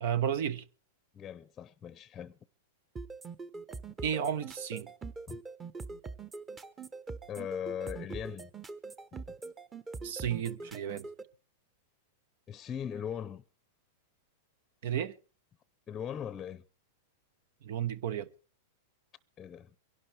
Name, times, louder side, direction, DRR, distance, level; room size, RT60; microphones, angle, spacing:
voice 1, 0.0-0.6 4.0-4.9 10.0-11.1 14.8-15.1 17.6-18.3, right 9 dB, 65° right, 1.2 m, -32 dB
voice 2, 1.1-2.4 5.3-5.4 7.3-8.5 12.5-13.4 15.9-16.6 19.4-19.8, left 9 dB, 25° left, 0.7 m, -39 dB
sound 1, 3.0-11.2, right 4 dB, 20° right, 1.2 m, -43 dB
24.0 x 11.5 x 3.4 m
hypercardioid pair, 115°, 0 cm